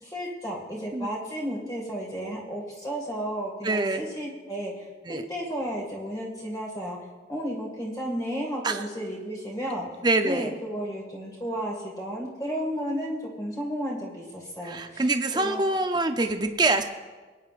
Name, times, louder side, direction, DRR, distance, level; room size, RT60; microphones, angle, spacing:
voice 1, 0.0-4.9 5.3-7.0 7.3-9.9 10.2-15.0 15.3-15.6, equal, 20° left, -2 dB, 1.9 m, -33 dB
voice 2, 3.6-4.0 5.1-5.2 8.6-8.8 10.0-10.5 14.6-16.8, right 2 dB, 25° right, 6 dB, 0.6 m, -25 dB
21.5 x 9.4 x 2.5 m, 1.3 s
head